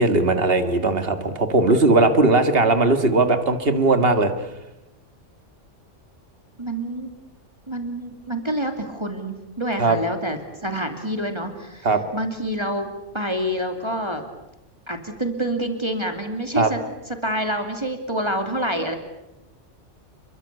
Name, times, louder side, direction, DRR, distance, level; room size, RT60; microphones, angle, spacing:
voice 1, 0.0-4.3 9.8-10.0 11.8-12.0 16.6-16.7, right 2 dB, 50° right, 8 dB, 2.3 m, -18 dB
voice 2, 6.6-7.1 7.7-11.9 12.1-14.2 14.9-16.8 17.1-19.0, right 1 dB, 20° right, 5 dB, 2.7 m, -27 dB
29.5 x 23.0 x 8.4 m, 0.90 s
omnidirectional pair, 1.3 m